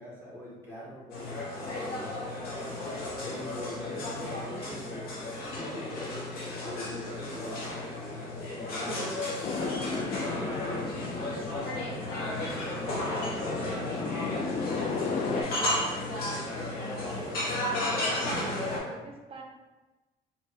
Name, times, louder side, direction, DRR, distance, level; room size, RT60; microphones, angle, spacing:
voice 1, 0.0-2.0 3.2-5.3 5.6-5.9 6.2-7.8 8.5-9.7 10.1-14.5, left 1 dB, 15° left, -7 dB, 0.7 m, -44 dB
sound 1, 1.1-18.8, left 1 dB, 65° left, 1.0 m, -33 dB
voice 2, 8.6-9.3 16.6-16.8 17.2-17.5 17.8-19.4, right 3 dB, 35° right, 1 dB, 0.6 m, -44 dB
sound 2, 9.4-15.4, left 4 dB, 40° left, 0.3 m, -35 dB
4.2 x 2.1 x 2.7 m, 1.1 s
cardioid pair, 110°, 17 cm